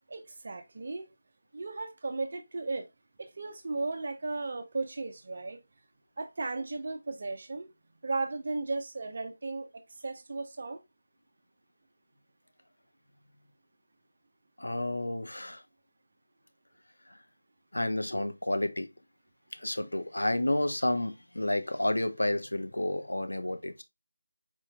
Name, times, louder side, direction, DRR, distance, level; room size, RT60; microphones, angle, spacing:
voice 1, 0.1-1.1 1.5-2.9 3.2-5.6 6.2-7.7 8.0-10.8, right 3 dB, 45° right, 0.6 m, -35 dB
voice 2, 14.6-15.6 17.7-18.9 19.5-23.8, left 1 dB, 75° left, 0.8 m, -30 dB
4.4 x 4.4 x 2.3 m
figure-of-eight pair, 160°, 0 cm